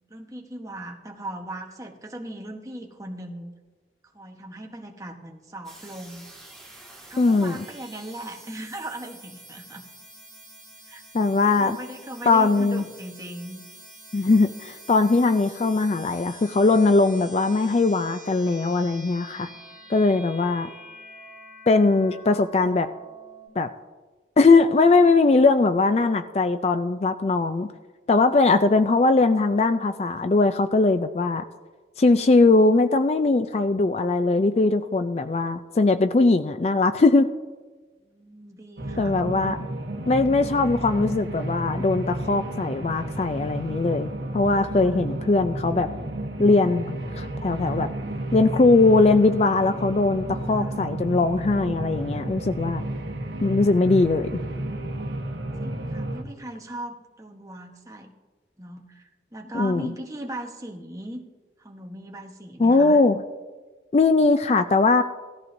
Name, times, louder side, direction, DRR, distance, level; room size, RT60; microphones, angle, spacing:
voice 1, 0.0-3.5 4.1-6.3 7.1-9.8 10.9-11.0 11.4-13.6 19.3-20.0 38.0-39.1 44.7-45.0 50.5-50.8 55.6-58.1 58.6-61.2 61.6-63.0, right 1 dB, 20° right, 2 dB, 1.0 m, -38 dB
sound 1, 5.6-23.5, right 1 dB, ahead, 1.8 m, -46 dB
voice 2, 7.2-7.6 11.1-11.8 12.3-12.8 14.1-19.5 19.9-20.7 21.7-22.9 23.6-23.7 24.4-27.7 28.1-31.4 32.0-37.3 39.0-39.6 40.1-45.9 46.4-47.9 48.3-52.8 53.4-54.3 59.5-59.9 62.6-63.2 63.9-65.0, left 3 dB, 35° left, 10 dB, 0.3 m, -20 dB
sound 2, 38.8-56.2, right 1 dB, 80° right, 1.1 m, -32 dB
17.5 x 13.5 x 2.6 m, 1.3 s
head